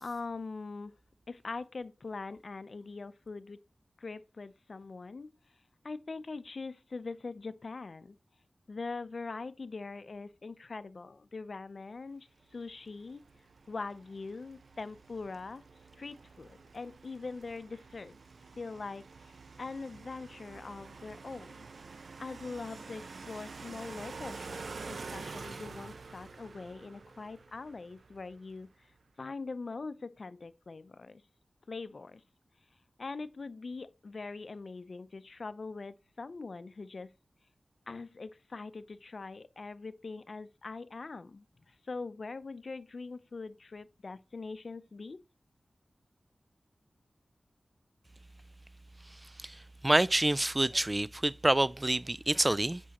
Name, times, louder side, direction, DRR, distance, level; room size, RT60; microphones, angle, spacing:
voice 1, 0.0-0.9 1.3-3.6 4.0-5.3 5.8-8.2 8.7-13.2 13.7-15.7 16.0-18.2 18.6-19.3 19.6-21.7 22.2-28.9 29.2-31.2 31.7-32.2 33.0-37.1 37.9-45.2, left 3 dB, 65° left, 0.5 m, -42 dB
sound 1, 12.5-28.7, right 4 dB, 80° right, 0.6 m, -48 dB
voice 2, 49.8-52.8, right 1 dB, 25° right, 0.3 m, -27 dB
8.3 x 6.0 x 2.9 m
cardioid pair, 50°, 0 cm